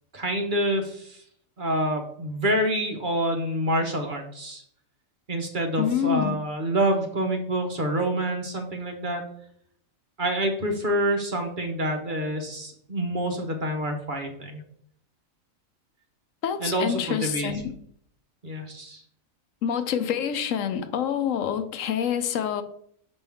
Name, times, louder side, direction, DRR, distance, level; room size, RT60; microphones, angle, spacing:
voice 1, 0.1-1.2 1.6-4.6 5.3-9.2 10.2-14.6 16.6-17.5 18.4-19.0, right 1 dB, 45° right, 0.9 m, -27 dB
voice 2, 5.8-6.4 16.4-17.7 19.6-22.6, left 9 dB, 75° left, 1.0 m, -27 dB
6.3 x 5.2 x 3.4 m
omnidirectional pair, 1.4 m